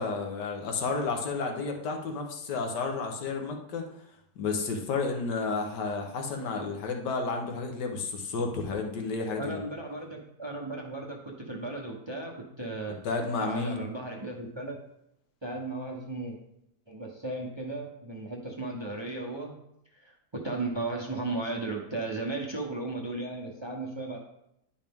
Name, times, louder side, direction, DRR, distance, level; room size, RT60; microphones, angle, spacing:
voice 1, 0.0-3.9 4.4-9.6 13.0-13.8, left 4 dB, 80° left, 3 dB, 1.7 m, -31 dB
voice 2, 9.4-13.0 13.4-14.8 15.4-16.4 16.9-19.5 20.0-24.2, right 2 dB, 25° right, 0 dB, 0.6 m, -35 dB
10.5 x 4.8 x 3.6 m, 0.79 s
omnidirectional pair, 1.8 m